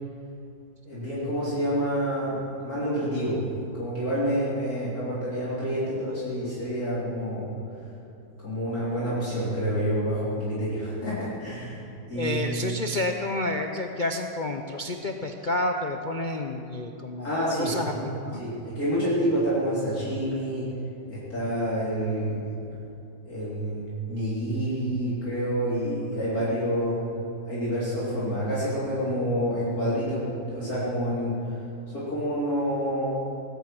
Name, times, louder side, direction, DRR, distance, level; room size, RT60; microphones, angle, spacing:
voice 1, 0.9-3.4 3.8-7.5 8.4-11.8 12.1-12.4 17.2-18.0 18.3-20.7 21.1-22.6 23.3-27.0 27.5-31.4 31.9-33.1, equal, 50° left, -10 dB, 3.9 m, -28 dB
voice 2, 12.2-18.4, left 1 dB, 65° left, 4 dB, 0.4 m, -30 dB
19.5 x 9.3 x 7.6 m, 2.7 s
omnidirectional pair, 2.0 m